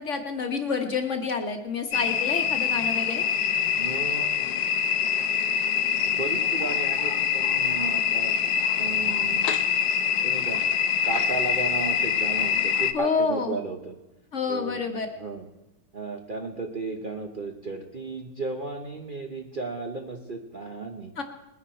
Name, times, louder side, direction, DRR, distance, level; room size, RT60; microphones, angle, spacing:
voice 1, 0.0-3.3 12.9-13.6 14.3-15.1 21.2-21.3, left 5 dB, 45° left, 5 dB, 1.4 m, -28 dB
sound 1, 1.9-12.9, left 7 dB, 75° left, 1.3 m, -25 dB
voice 2, 3.8-4.5 6.0-8.4 8.7-9.5 10.2-10.6 11.0-14.0 14.5-14.9 15.2-15.5 15.9-21.1, right 3 dB, 35° right, 2 dB, 0.9 m, -34 dB
20.5 x 10.0 x 4.4 m, 1.0 s
omnidirectional pair, 1.9 m